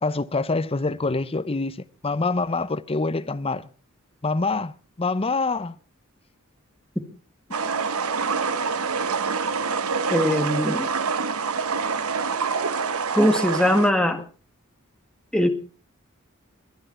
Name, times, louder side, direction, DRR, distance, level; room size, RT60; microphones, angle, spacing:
voice 1, 0.0-1.8 2.0-3.7 4.2-5.7, left 3 dB, 25° left, 0.7 m, -25 dB
sound 1, 7.5-13.9, right 5 dB, 85° right, 1.0 m, -26 dB
voice 2, 10.1-10.9 13.1-14.2 15.3-15.5, left 1 dB, 5° left, 1.6 m, -20 dB
22.0 x 10.5 x 4.4 m
head